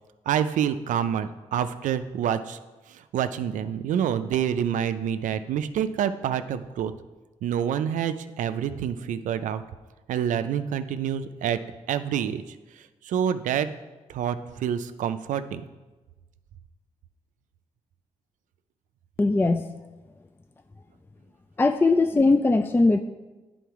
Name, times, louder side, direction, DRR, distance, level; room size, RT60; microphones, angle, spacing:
voice 1, 0.3-2.6 2.9-6.9 7.4-9.6 10.1-11.6 11.9-12.6 13.0-13.7 14.1-15.6, right 9 dB, 80° right, 11 dB, 0.4 m, -27 dB
voice 2, 19.2-19.6 21.6-23.0, left 3 dB, 15° left, 9 dB, 0.3 m, -20 dB
9.3 x 3.9 x 4.6 m, 1.2 s
cardioid pair, 60°, 13 cm